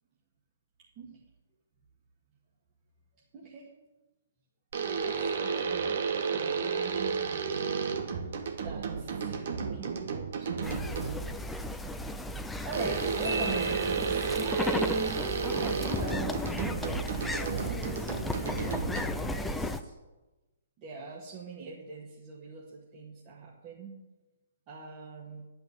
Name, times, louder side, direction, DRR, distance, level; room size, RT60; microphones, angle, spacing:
voice 1, 3.3-3.7 5.0-6.0 6.3-11.9 12.6-18.8 19.1-19.9 20.8-24.0 24.7-25.5, right 4 dB, 35° right, -5 dB, 2.1 m, -41 dB
sound 1, 4.7-11.3 12.7-19.4, right 5 dB, 60° right, 1.4 m, -32 dB
sound 2, 10.6-19.8, left 2 dB, 5° left, 0.6 m, -35 dB
Marimba xylophone, 13.2-14.7, right 4 dB, 80° right, 2.7 m, -39 dB
10.5 x 5.8 x 8.7 m, 1.1 s
hypercardioid pair, 135°, 0 cm